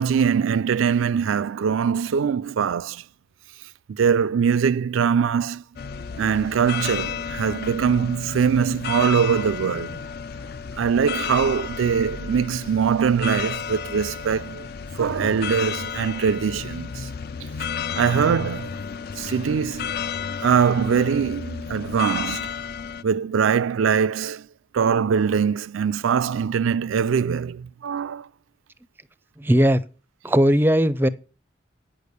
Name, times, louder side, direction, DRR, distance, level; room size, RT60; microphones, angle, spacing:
voice 1, 0.0-3.0 3.9-5.6 6.2-10.0 10.8-14.7 15.0-17.1 18.0-18.7 19.2-19.9 20.4-22.5 23.0-24.5 24.7-28.3, right 7 dB, 90° right, 0.4 m, -22 dB
sound 1, 5.8-23.0, left 7 dB, 50° left, 0.4 m, -32 dB
voice 2, 29.4-29.8 30.2-31.1, equal, 10° right, 0.4 m, -18 dB
9.0 x 6.7 x 6.7 m
head